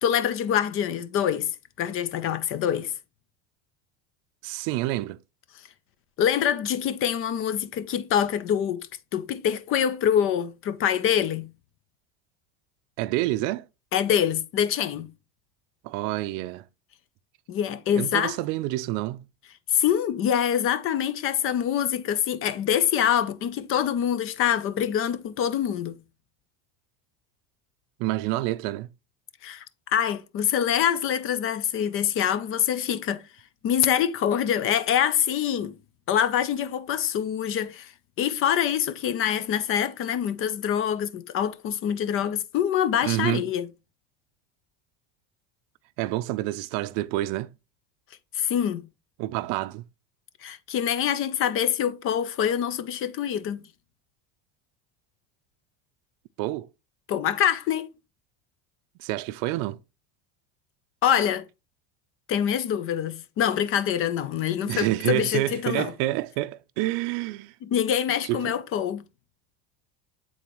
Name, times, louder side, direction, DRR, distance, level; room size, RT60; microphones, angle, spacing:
voice 1, 0.0-1.5 1.8-2.9 6.2-8.9 9.1-11.5 13.9-15.1 17.5-18.4 19.7-26.0 29.4-29.6 29.9-33.2 33.6-35.7 36.1-37.9 38.2-43.7 48.3-48.8 50.4-53.6 57.1-57.9 61.0-61.5 62.3-65.9 67.6-69.0, left 9 dB, 40° left, 0.5 m, -25 dB
voice 2, 4.4-5.2 13.0-13.7 15.8-16.7 18.0-19.2 28.0-28.9 43.0-43.4 46.0-47.5 49.2-49.8 56.4-56.7 59.0-59.8 64.6-67.5 68.2-68.5, right 16 dB, 60° right, 0.5 m, -28 dB
9.2 x 3.9 x 3.0 m
cardioid pair, 145°, 35 cm